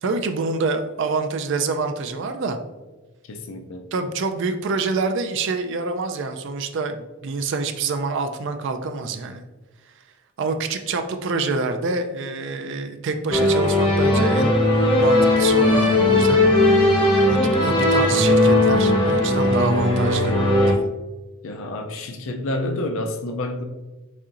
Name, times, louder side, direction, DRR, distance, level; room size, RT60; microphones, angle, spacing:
voice 1, 0.0-2.6 3.9-9.4 9.9-10.0 10.4-14.5 15.0-16.5 17.3-20.4 20.7-20.9, right 4 dB, 60° right, 6 dB, 0.4 m, -26 dB
voice 2, 3.3-3.9 21.4-23.6, left 1 dB, 65° left, 5 dB, 0.5 m, -29 dB
sound 1, 13.3-20.7, left 2 dB, 25° left, 0.8 m, -18 dB
4.6 x 4.2 x 2.5 m, 1.2 s
head